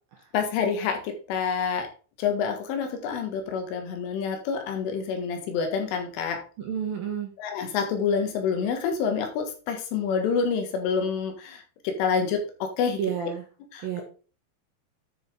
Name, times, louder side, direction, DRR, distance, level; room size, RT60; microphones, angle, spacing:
voice 1, 0.3-1.9 2.2-6.4 7.4-13.0 13.7-13.9, left 6 dB, 75° left, 5 dB, 4.2 m, -27 dB
voice 2, 6.6-7.3 13.0-13.4 13.8-14.0, right 8 dB, 65° right, 2 dB, 2.5 m, -30 dB
10.0 x 6.6 x 3.6 m, 0.36 s
omnidirectional pair, 5.8 m